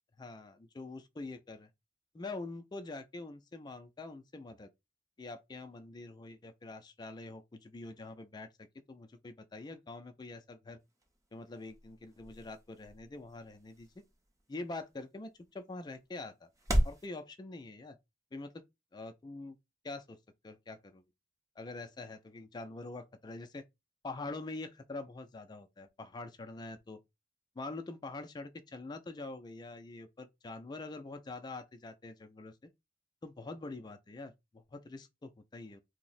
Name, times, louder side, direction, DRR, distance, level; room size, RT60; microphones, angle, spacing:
voice 1, 0.2-1.7 2.1-4.7 5.2-8.5 8.9-10.8 11.3-13.9 14.5-16.5 16.8-18.0 18.3-18.6 18.9-19.6 19.8-20.2 20.4-21.0 21.6-23.6 24.0-27.0 27.6-32.5 33.2-35.8, left 2 dB, 25° left, 0.3 m, -45 dB
sound 1, 10.8-17.1, equal, 20° right, 0.6 m, -38 dB
2.8 x 2.0 x 4.0 m
head